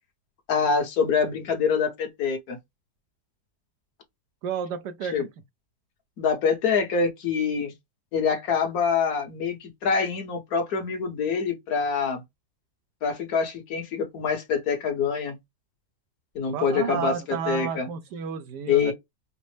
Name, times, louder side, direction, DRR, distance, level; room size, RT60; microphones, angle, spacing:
voice 1, 0.5-2.6 5.1-5.3 6.2-7.7 8.1-12.2 13.0-15.4 16.3-17.9 18.7-18.9, left 6 dB, 60° left, 1.5 m, -25 dB
voice 2, 4.4-5.2 16.5-18.9, right 7 dB, 80° right, 1.3 m, -31 dB
5.1 x 2.0 x 3.2 m
omnidirectional pair, 1.8 m